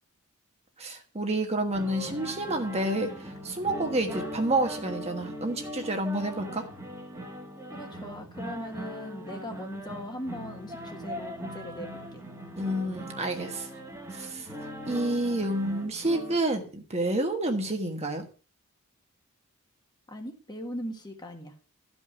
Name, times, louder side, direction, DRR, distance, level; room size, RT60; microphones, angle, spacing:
voice 1, 0.8-6.6 12.6-13.7 14.1-14.5 14.9-18.3, right 1 dB, 30° right, 4 dB, 1.4 m, -29 dB
sound 1, 1.7-16.4, equal, 15° right, 1.6 m, -40 dB
voice 2, 7.7-12.2 20.1-21.5, left 1 dB, 20° left, 4 dB, 1.4 m, -39 dB
13.0 x 5.4 x 6.0 m, 0.39 s
head